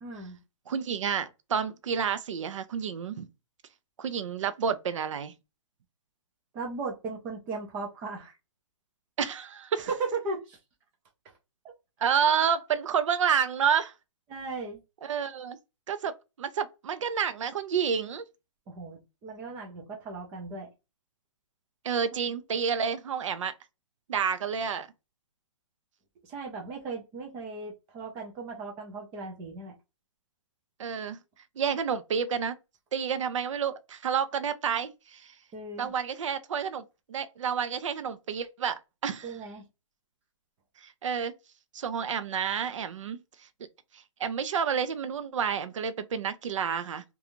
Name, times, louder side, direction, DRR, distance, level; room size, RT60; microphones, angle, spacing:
voice 1, 0.0-0.4 6.5-8.3 9.8-10.6 11.6-11.7 14.3-14.8 18.7-20.7 26.2-29.7 35.5-35.9 39.2-39.6, right 3 dB, 10° right, 0.3 m, -37 dB
voice 2, 0.7-3.3 4.0-5.3 9.2-9.9 12.0-13.9 15.0-15.6 15.9-18.2 21.8-23.5 24.1-24.9 30.8-31.2 31.6-32.5 32.9-35.3 35.8-39.3 40.8-41.3 41.7-43.5 43.9-47.0, right 7 dB, 75° right, 0.5 m, -29 dB
2.5 x 2.3 x 2.8 m
hypercardioid pair, 165°, 16 cm